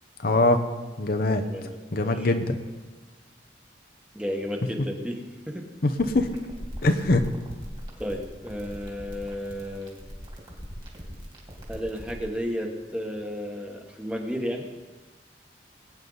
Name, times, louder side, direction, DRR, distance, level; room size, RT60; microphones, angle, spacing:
voice 1, 0.2-0.6 1.0-1.4 1.9-2.6 5.8-6.3 6.8-7.2, left 2 dB, 55° left, 6 dB, 0.8 m, -22 dB
voice 2, 1.4-2.3 4.1-5.7 8.0-10.0 11.7-14.7, equal, 5° right, 2 dB, 1.3 m, -33 dB
sound 1, 5.9-12.2, equal, 30° right, 2.8 m, -40 dB
21.0 x 9.3 x 4.0 m, 1.3 s
head